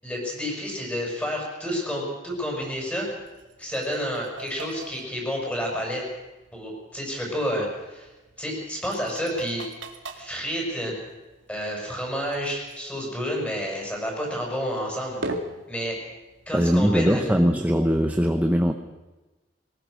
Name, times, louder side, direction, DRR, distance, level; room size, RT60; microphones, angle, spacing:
voice 1, 0.0-3.1 3.6-6.0 6.5-8.1 8.4-9.6 10.2-10.9 11.5-15.2 15.7-16.0 16.5-17.3, equal, 10° left, -1 dB, 6.6 m, -30 dB
sound 1, 2.3-18.1, right 1 dB, 90° right, 2.1 m, -43 dB
voice 2, 16.5-18.7, equal, 10° right, 5 dB, 0.9 m, -21 dB
21.5 x 19.0 x 6.5 m, 1.1 s
head